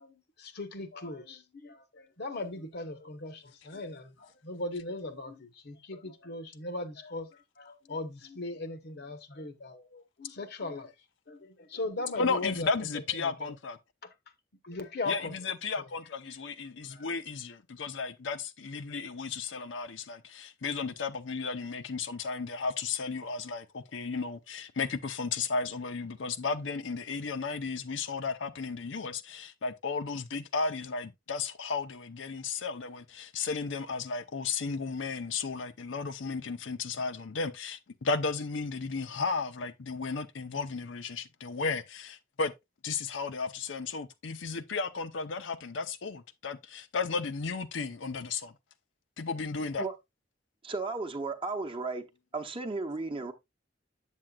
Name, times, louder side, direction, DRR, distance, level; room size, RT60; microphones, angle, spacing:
voice 1, 0.0-10.9 11.3-12.7 13.1-13.5 14.0-14.1 14.6-15.3 15.8-15.9 16.9-17.0, left 2 dB, 60° left, 1.0 m, -39 dB
voice 2, 12.2-13.8 15.1-42.5 42.8-48.5 49.2-49.9, left 4 dB, 90° left, 0.6 m, -34 dB
voice 3, 50.6-52.1 52.3-53.3, right 3 dB, 30° right, 0.8 m, -34 dB
7.6 x 7.4 x 2.3 m
head